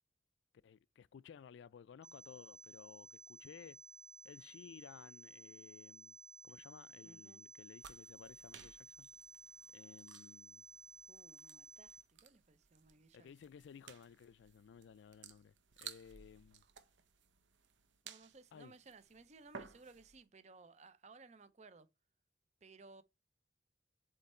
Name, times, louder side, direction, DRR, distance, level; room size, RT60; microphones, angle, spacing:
voice 1, 0.6-3.8 4.2-6.2 6.4-9.1 9.7-10.6 13.1-15.5 15.8-16.6 18.5-18.7, left 7 dB, 75° left, 0.3 m, -57 dB
sound 1, 2.0-12.0, right 1 dB, 5° right, 0.9 m, -57 dB
voice 2, 7.0-7.4 11.1-13.3 18.0-21.9 22.6-23.0, right 3 dB, 40° right, 0.5 m, -60 dB
sound 2, 7.8-20.2, right 7 dB, 85° right, 0.7 m, -57 dB
7.7 x 3.2 x 4.2 m
head